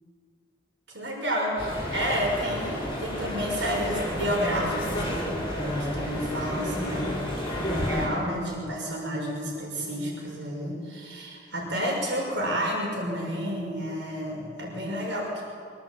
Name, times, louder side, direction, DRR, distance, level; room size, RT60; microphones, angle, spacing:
voice 1, 0.9-15.4, equal, 80° right, -2 dB, 6.2 m, -30 dB
sound 1, 1.6-8.1, equal, 30° left, 7.2 m, -31 dB
24.0 x 18.5 x 8.6 m, 2.3 s
head